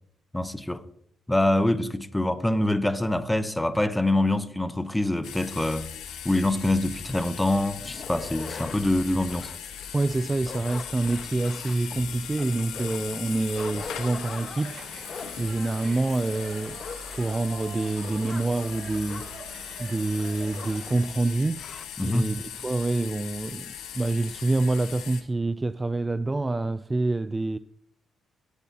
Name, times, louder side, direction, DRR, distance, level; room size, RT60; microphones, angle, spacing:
voice 1, 0.3-0.8 1.3-5.9 6.2-9.5 22.0-22.3, left 1 dB, 10° left, 0.8 m, -25 dB
sound 1, 5.2-25.2, left 9 dB, 85° left, 1.3 m, -39 dB
sound 2, 7.8-21.0 21.2-21.3 21.5-21.9, left 5 dB, 45° left, 1.2 m, -43 dB
voice 2, 9.9-14.8 15.1-16.8 17.0-19.3 19.8-21.7 22.0-27.6, right 2 dB, 20° right, 0.3 m, -27 dB
sound 3, 13.5-21.1, right 6 dB, 55° right, 0.9 m, -45 dB
17.5 x 8.2 x 2.8 m
cardioid pair, 90°, 0 cm